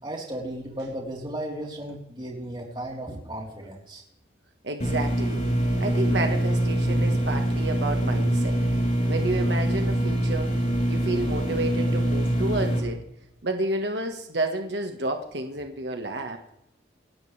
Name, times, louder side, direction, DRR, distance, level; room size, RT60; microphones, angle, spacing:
voice 1, 0.0-4.0, right 1 dB, 25° right, -2 dB, 4.0 m, -35 dB
voice 2, 4.6-5.5 5.8-8.6 9.1-10.5 10.9-13.0 13.4-16.4, right 2 dB, 70° right, 4 dB, 1.6 m, -30 dB
sound 1, 4.8-12.8, right 1 dB, 40° left, 5.6 m, -24 dB
27.5 x 13.0 x 3.5 m, 0.79 s
head